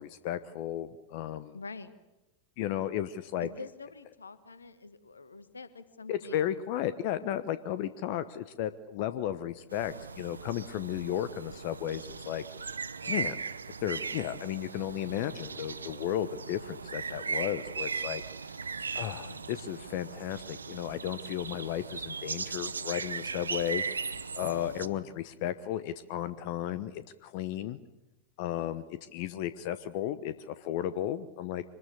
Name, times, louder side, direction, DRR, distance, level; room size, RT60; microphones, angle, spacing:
voice 1, 0.0-1.5 2.6-3.5 6.1-12.4 13.1-13.4 13.8-18.2 18.9-23.8 24.3-27.8 28.4-31.6, left 11 dB, 55° left, 13 dB, 1.0 m, -34 dB
voice 2, 1.5-1.9 3.4-6.6 13.0-13.3 18.9-19.4 24.4-25.2, left 4 dB, 80° left, 13 dB, 1.5 m, -46 dB
sound 1, 9.7-24.9, right 5 dB, 80° right, 0.9 m, -38 dB
25.5 x 20.5 x 8.5 m, 1.0 s
figure-of-eight pair, 90°, 0 cm